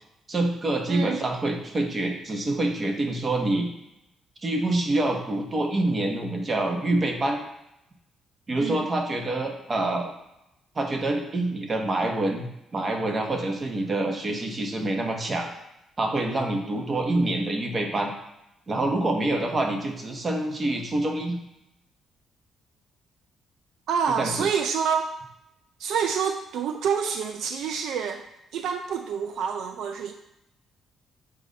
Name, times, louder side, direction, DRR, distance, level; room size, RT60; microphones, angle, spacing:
voice 1, 0.3-3.7 4.4-7.4 8.5-10.1 10.7-12.4 12.7-15.5 16.0-18.1 18.7-21.4 24.2-24.5, right 2 dB, 35° right, 2 dB, 1.2 m, -26 dB
voice 2, 0.9-1.2 8.6-8.9 23.9-25.1 25.8-28.3 28.5-30.1, right 6 dB, 80° right, 6 dB, 0.4 m, -27 dB
7.2 x 2.7 x 5.1 m, 0.85 s
cardioid pair, 90°, 0 cm